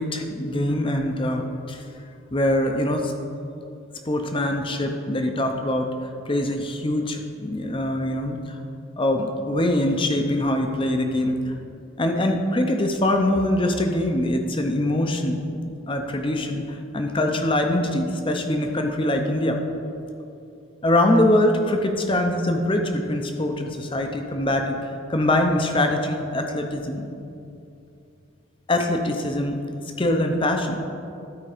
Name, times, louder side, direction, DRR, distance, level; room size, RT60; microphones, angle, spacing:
voice 1, 0.0-1.8 2.3-3.1 4.1-5.9 6.3-8.6 9.0-11.5 12.0-15.5 15.9-19.6 20.8-27.1 28.7-29.6 30.0-30.8, left 1 dB, 25° left, 4 dB, 0.6 m, -23 dB
12.5 x 4.8 x 5.0 m, 2.7 s
head